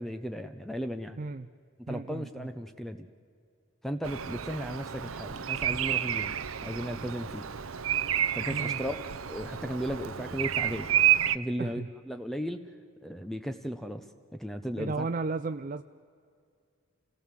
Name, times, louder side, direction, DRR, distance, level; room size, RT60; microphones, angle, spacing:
voice 1, 0.0-1.2 1.8-3.1 3.8-6.3 6.6-7.5 8.3-9.0 9.3-10.9 11.3-12.6 13.0-14.0 14.4-15.1, equal, ahead, 7 dB, 0.8 m, -35 dB
voice 2, 1.2-1.5 1.9-2.5 8.5-8.8 11.6-11.9 14.8-15.8, right 3 dB, 40° right, 9 dB, 0.5 m, -34 dB
Bird vocalization bird call bird song, 4.0-11.4, right 11 dB, 80° right, 0.8 m, -30 dB
28.0 x 18.0 x 7.6 m, 2.3 s
head